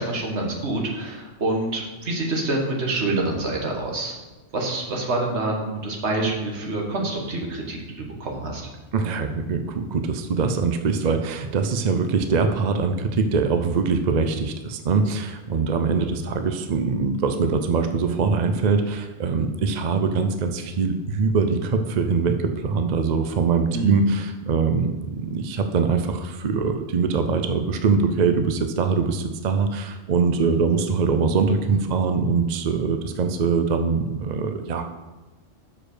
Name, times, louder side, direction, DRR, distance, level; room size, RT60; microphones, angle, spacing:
voice 1, 0.0-4.2 4.5-8.7 23.7-24.0, right 2 dB, 70° right, 0 dB, 1.8 m, -27 dB
voice 2, 8.9-34.9, right 5 dB, 50° right, 7 dB, 0.6 m, -23 dB
6.5 x 5.0 x 6.5 m, 1.2 s
omnidirectional pair, 1.2 m